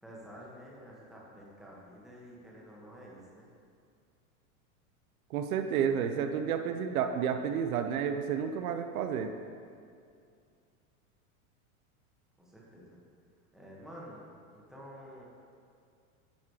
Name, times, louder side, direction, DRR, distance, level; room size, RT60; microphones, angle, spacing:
voice 1, 0.0-3.5 12.4-13.0 13.5-15.2, equal, ahead, -5 dB, 1.4 m, -50 dB
voice 2, 5.3-9.3, right 7 dB, 80° right, 7 dB, 0.7 m, -31 dB
10.5 x 3.7 x 4.8 m, 2.3 s
supercardioid pair, 135°, 42 cm